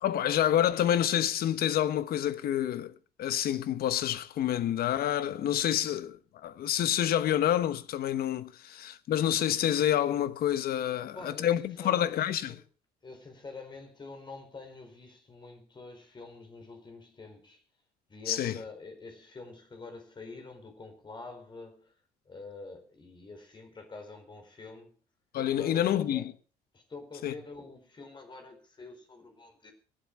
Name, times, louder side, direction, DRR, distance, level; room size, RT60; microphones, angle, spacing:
voice 1, 0.0-2.9 3.2-6.2 6.4-12.5 18.3-18.6 25.3-26.3 27.2-27.3, left 11 dB, 65° left, 1.1 m, -28 dB
voice 2, 11.0-12.6 13.0-17.6 18.1-21.9 22.2-25.0 25.5-26.3 26.7-29.7, left 3 dB, 25° left, 4.4 m, -46 dB
23.0 x 8.0 x 4.6 m
cardioid pair, 110°, 17 cm